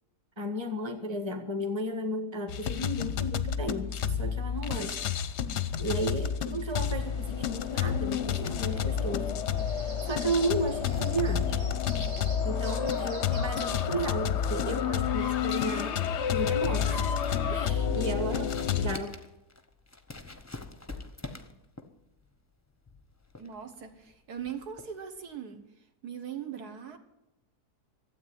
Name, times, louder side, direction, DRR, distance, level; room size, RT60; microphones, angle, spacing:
voice 1, 0.4-5.0 5.8-9.3 9.8-11.5 12.4-16.0 16.3-17.0 17.5-18.5 18.8-19.1, right 1 dB, 15° right, 6 dB, 1.4 m, -33 dB
sound 1, 2.5-19.0, left 8 dB, 55° left, 0.8 m, -30 dB
sound 2, 3.8-18.5, right 3 dB, 90° right, 2.6 m, -52 dB
sound 3, 6.7-25.3, left 2 dB, 15° left, 0.7 m, -49 dB
voice 2, 17.6-18.1 23.4-25.6 26.0-27.0, right 8 dB, 70° right, 6 dB, 1.8 m, -40 dB
13.0 x 8.4 x 9.6 m, 0.89 s
omnidirectional pair, 1.7 m